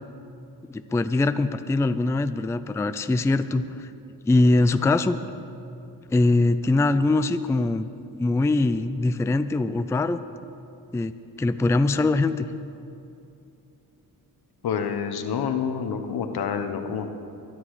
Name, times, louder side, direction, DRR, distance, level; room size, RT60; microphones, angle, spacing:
voice 1, 0.7-3.9 4.3-5.2 6.1-10.2 10.9-12.5, left 2 dB, 10° left, 11 dB, 0.3 m, -22 dB
voice 2, 14.6-17.1, left 7 dB, 80° left, 7 dB, 1.2 m, -28 dB
21.5 x 11.0 x 4.9 m, 2.8 s
wide cardioid pair, 130°, 37 cm